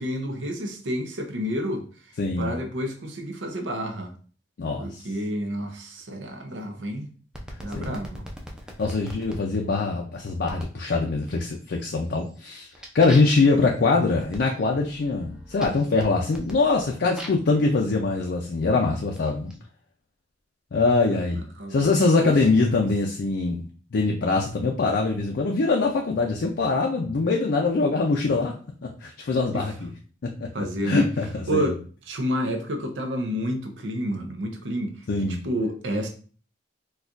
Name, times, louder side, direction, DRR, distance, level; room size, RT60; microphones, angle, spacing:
voice 1, 0.0-1.8 2.4-4.1 4.8-7.1 7.6-8.3 21.1-22.4 22.7-22.8 24.6-24.7 29.5-29.7 30.5-31.1 31.5-31.8 32.1-36.1, equal, 80° right, 0.7 m, -30 dB
voice 2, 2.2-2.5 4.6-5.0 7.7-8.0 8.8-12.7 12.9-19.5 20.7-21.4 21.7-23.6 23.9-28.5 28.8-29.9 30.2-30.5 30.8-31.7 35.1-35.4, left 3 dB, 60° left, 0.4 m, -23 dB
sound 1, 7.3-9.4 10.5-10.8 11.3-11.8 12.1-17.5 18.3-19.6, equal, 5° right, 0.5 m, -42 dB
4.2 x 2.3 x 2.4 m
head